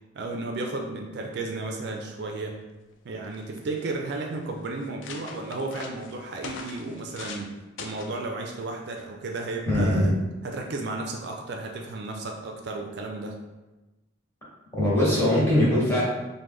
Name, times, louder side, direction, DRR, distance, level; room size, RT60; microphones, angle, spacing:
voice 1, 0.1-2.6 3.0-7.5 7.8-10.1 10.4-13.4, right 2 dB, 60° right, 2 dB, 0.4 m, -33 dB
sound 1, 2.9-3.0 3.2-3.8 4.4-4.5 4.8-7.5 7.8-8.2 9.0-9.2, left 4 dB, 70° left, 0.4 m, -41 dB
voice 2, 9.7-10.1 14.8-16.0, left 1 dB, 15° left, -9 dB, 1.2 m, -21 dB
3.1 x 2.1 x 3.5 m, 1.1 s
head